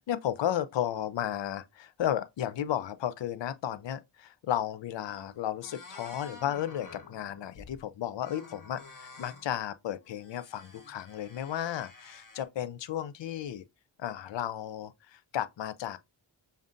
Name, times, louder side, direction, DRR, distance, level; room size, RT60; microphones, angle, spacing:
voice 1, 0.0-13.6 14.0-16.0, left 11 dB, 65° left, 0.5 m, -34 dB
sound 1, 4.7-4.8 5.0-5.3 5.6-7.8 8.2-9.5 10.1-12.4, left 3 dB, 40° left, 1.1 m, -50 dB
5.2 x 2.6 x 2.5 m
wide cardioid pair, 60°, 47 cm